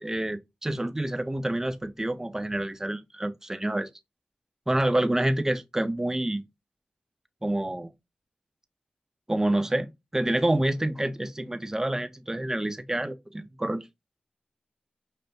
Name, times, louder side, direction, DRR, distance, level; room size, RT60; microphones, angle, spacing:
voice 1, 0.0-3.9 4.7-6.4 7.4-7.9 9.3-9.9 10.1-13.8, right 1 dB, 15° right, 0.6 m, -27 dB
5.4 x 2.6 x 3.3 m
wide cardioid pair, 65°, 3 cm